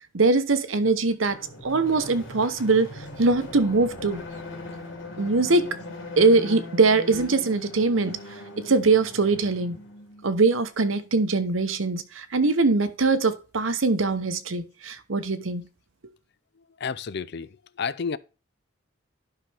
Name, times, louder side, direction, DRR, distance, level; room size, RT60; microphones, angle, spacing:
voice 1, 0.1-4.2 5.2-5.8 6.2-8.2 8.6-9.8 10.2-15.7, right 3 dB, 90° right, 1.0 m, -22 dB
sound 1, 1.2-10.4, left 2 dB, 75° left, 2.7 m, -40 dB
voice 2, 16.8-18.2, left 6 dB, 60° left, 0.5 m, -31 dB
11.5 x 5.9 x 3.4 m
head